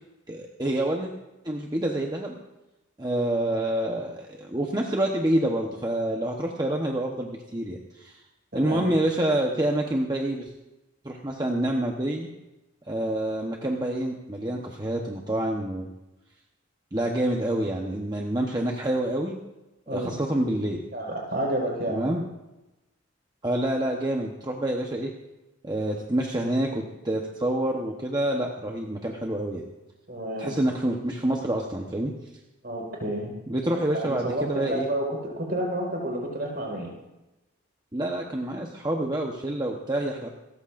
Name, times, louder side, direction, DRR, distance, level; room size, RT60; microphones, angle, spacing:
voice 1, 0.3-1.1 1.4-2.4 3.0-8.2 8.5-10.5 11.0-12.3 12.9-15.9 16.9-19.4 19.9-20.8 21.9-22.2 23.4-25.1 25.6-29.6 30.4-32.1 33.5-34.9 37.9-40.3, right 1 dB, 20° right, 0 dB, 1.0 m, -27 dB
voice 2, 8.5-8.9 19.9-20.1 20.9-22.0 30.1-30.6 32.6-33.3 33.9-36.9, right 1 dB, 45° right, -1 dB, 5.0 m, -30 dB
28.0 x 14.5 x 2.6 m, 1.0 s
head